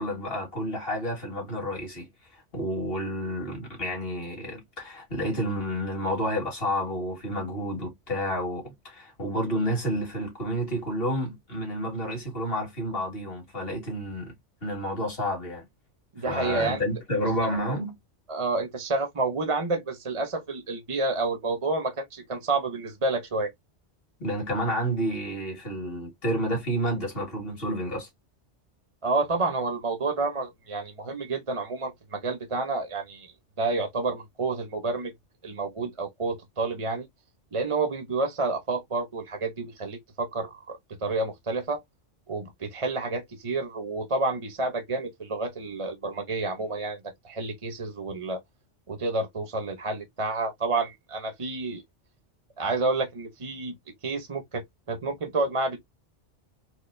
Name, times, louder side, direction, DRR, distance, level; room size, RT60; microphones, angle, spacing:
voice 1, 0.0-14.3 14.6-15.6 16.3-17.9 24.2-28.1, equal, 50° left, 2.3 m, -30 dB
voice 2, 16.1-16.8 18.3-23.5 29.0-33.3 33.6-35.1 35.4-37.1 37.5-41.8 42.3-47.0 47.2-48.4 48.9-51.8 52.6-53.7 54.0-55.8, right 3 dB, 30° right, 0.9 m, -29 dB
4.6 x 2.7 x 2.6 m
omnidirectional pair, 1.2 m